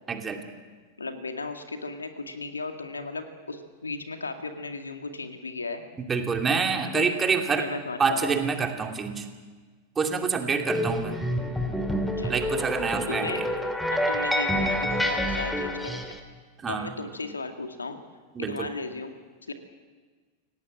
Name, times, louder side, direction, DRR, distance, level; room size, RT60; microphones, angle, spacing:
voice 1, 0.1-0.4 6.1-7.6 8.0-9.2 10.0-11.2 12.3-13.5 16.6-16.9 18.4-18.7, right 5 dB, 20° right, 4 dB, 2.7 m, -27 dB
voice 2, 1.0-5.8 6.9-7.2 7.6-8.4 12.2-12.4 13.1-13.4 13.9-16.1 16.7-18.0 18.4-19.1 19.5-19.6, left 3 dB, 75° left, 6 dB, 2.1 m, -35 dB
sound 1, 10.7-16.2, equal, 5° left, 2.8 m, -28 dB
28.5 x 17.5 x 7.6 m, 1.4 s
figure-of-eight pair, 90°, 0 cm